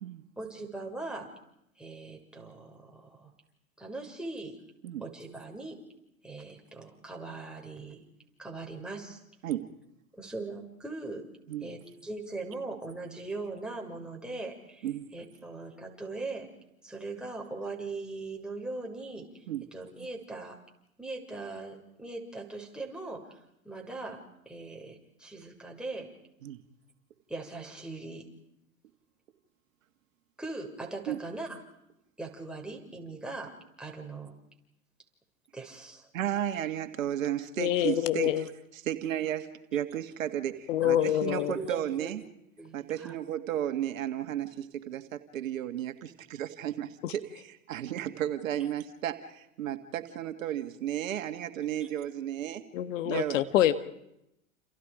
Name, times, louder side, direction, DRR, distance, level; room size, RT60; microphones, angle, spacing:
voice 1, 0.4-1.3 1.8-3.3 3.8-4.6 5.0-5.8 6.2-8.0 8.4-9.2 10.2-11.3 11.6-16.5 16.8-19.4 19.7-20.6 21.0-23.4 23.6-26.1 27.3-28.3 30.4-31.6 32.2-34.3 35.5-36.1 40.8-42.1 42.6-43.1, right 3 dB, ahead, 0 dB, 6.6 m, -40 dB
voice 2, 36.1-42.2 42.7-52.6 53.0-53.4, right 11 dB, 70° right, 8 dB, 2.1 m, -34 dB
voice 3, 37.6-38.4 40.7-41.5 47.0-47.1 52.7-53.7, left 12 dB, 65° left, 11 dB, 1.7 m, -26 dB
29.5 x 29.5 x 5.1 m, 0.82 s
hypercardioid pair, 90°, 41 cm